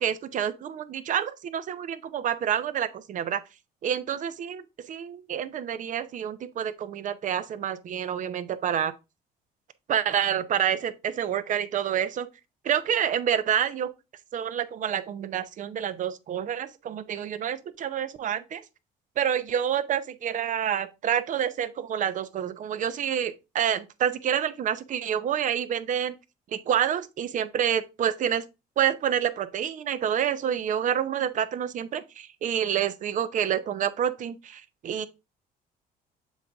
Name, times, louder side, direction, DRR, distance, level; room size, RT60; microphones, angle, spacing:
voice 1, 0.0-3.4 3.8-8.9 9.9-12.3 12.6-13.9 14.3-18.6 19.2-26.1 26.5-28.4 28.8-35.1, right 9 dB, 50° right, 0.7 m, -28 dB
7.1 x 4.0 x 3.4 m
cardioid pair, 110°, 17 cm